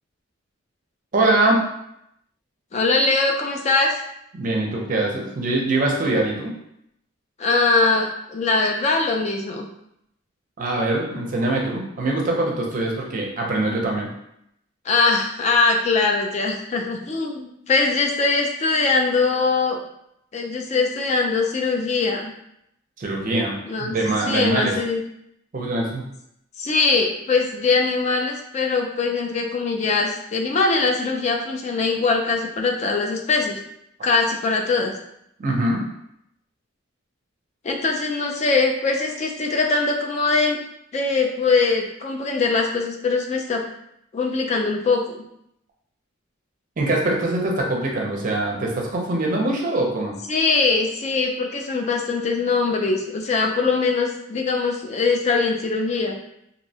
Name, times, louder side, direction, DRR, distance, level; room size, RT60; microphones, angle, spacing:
voice 1, 1.1-1.6 4.4-6.5 10.6-14.1 23.0-24.7 25.5-26.0 35.4-35.8 46.8-50.2, right 2 dB, 40° right, 0 dB, 0.5 m, -23 dB
voice 2, 2.7-3.9 7.4-9.7 14.9-19.8 20.3-22.3 23.6-23.9 24.3-25.0 26.6-33.6 34.0-34.9 37.6-40.6 40.9-43.6 44.1-45.2 50.3-56.1, left 4 dB, 35° left, 2 dB, 0.3 m, -22 dB
2.6 x 2.1 x 2.7 m, 0.78 s
head